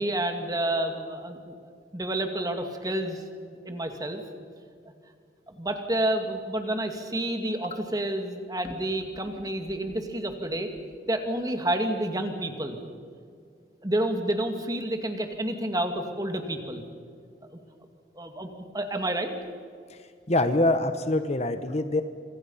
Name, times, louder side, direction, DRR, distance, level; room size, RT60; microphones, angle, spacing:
voice 1, 0.0-1.5 1.9-3.2 3.6-4.2 5.5-10.7 11.1-12.8 13.8-16.8 18.1-18.5 18.7-19.3, right 1 dB, 20° right, 5 dB, 2.3 m, -29 dB
voice 2, 20.3-22.0, left 2 dB, 35° left, 9 dB, 1.1 m, -24 dB
26.5 x 26.0 x 5.7 m, 2.2 s
head